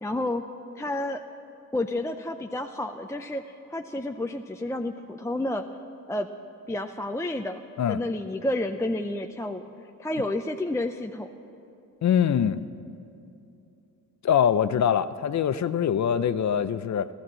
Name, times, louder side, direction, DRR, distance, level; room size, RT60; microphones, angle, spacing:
voice 1, 0.0-0.4 0.7-1.2 1.7-5.6 6.1-6.3 6.7-7.6 7.9-9.6 10.0-11.3, left 1 dB, 10° left, 4 dB, 0.5 m, -30 dB
voice 2, 12.0-12.6 14.2-17.1, left 8 dB, 55° left, 13 dB, 0.6 m, -23 dB
14.5 x 12.5 x 7.5 m, 2.7 s
cardioid pair, 70°, 34 cm